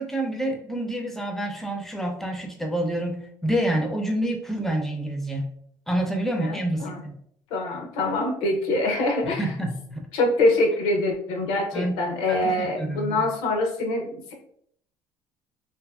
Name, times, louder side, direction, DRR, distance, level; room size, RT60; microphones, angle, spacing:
voice 1, 0.0-5.5 5.9-7.2 9.2-10.1 11.7-12.0 12.3-13.3, right 1 dB, 5° left, 2 dB, 0.5 m, -28 dB
voice 2, 6.4-7.0 7.5-9.5 10.1-14.3, left 2 dB, 80° left, 3 dB, 0.6 m, -24 dB
2.6 x 2.5 x 2.3 m, 0.67 s
cardioid pair, 110°, 9 cm